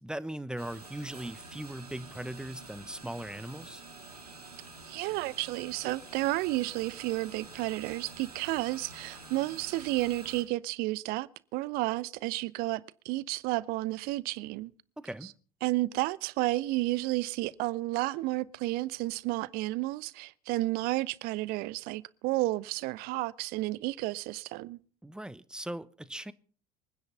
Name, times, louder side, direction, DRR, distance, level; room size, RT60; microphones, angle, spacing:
voice 1, 0.0-3.8 15.0-15.3 25.0-26.3, right 1 dB, 5° right, 1.0 m, -39 dB
sound 1, 0.6-10.4, right 3 dB, 90° right, 2.2 m, -48 dB
voice 2, 4.8-14.7 15.2-15.3 15.6-24.8, right 19 dB, 55° right, 0.8 m, -32 dB
24.0 x 9.9 x 5.6 m
figure-of-eight pair, 65°, 19 cm